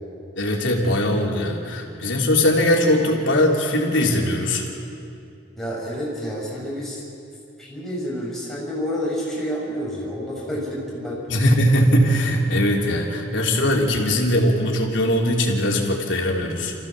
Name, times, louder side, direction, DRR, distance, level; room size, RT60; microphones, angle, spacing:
voice 1, 0.4-4.7 11.3-16.7, left 1 dB, 90° left, 0 dB, 3.2 m, -20 dB
voice 2, 5.6-7.0 7.6-11.2, equal, ahead, -6 dB, 6.4 m, -29 dB
27.5 x 15.0 x 7.4 m, 2.6 s
head